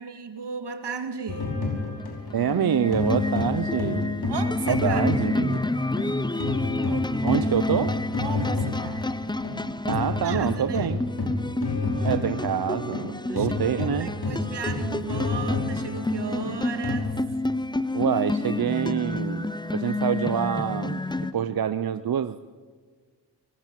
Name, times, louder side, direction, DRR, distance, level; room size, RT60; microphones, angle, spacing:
voice 1, 0.0-1.6 4.3-5.1 8.2-9.1 10.0-10.9 13.3-17.2, right 6 dB, 75° right, 9 dB, 2.1 m, -35 dB
sound 1, 1.3-6.1 6.4-17.0, left 3 dB, 60° left, 5.2 m, -30 dB
sound 2, 2.0-21.3, left 2 dB, 10° left, 1.0 m, -29 dB
voice 2, 2.3-4.3 4.7-5.7 6.8-8.0 9.8-11.0 12.0-14.1 17.9-21.0 21.3-22.5, right 9 dB, 60° right, 13 dB, 0.8 m, -26 dB
23.5 x 19.0 x 7.6 m, 1.5 s
cardioid pair, 55°, 41 cm